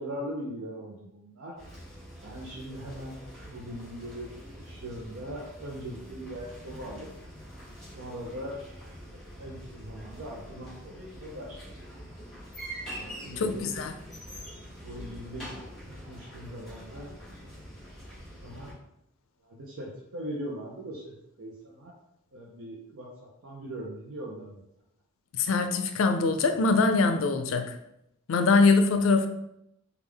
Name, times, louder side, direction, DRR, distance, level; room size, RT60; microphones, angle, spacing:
voice 1, 0.0-1.6 2.2-3.2 3.4-7.1 7.9-8.7 9.0-12.1 13.0-13.8 14.3-17.1 18.4-18.8 19.4-22.0 22.3-24.6 28.9-29.0, equal, 80° right, -4 dB, 0.6 m, -41 dB
sound 1, 1.6-18.7, equal, 5° left, 1.4 m, -45 dB
voice 2, 13.4-13.9 25.3-27.8 28.3-29.3, left 3 dB, 70° left, 7 dB, 0.4 m, -23 dB
3.5 x 2.3 x 3.3 m, 0.79 s
head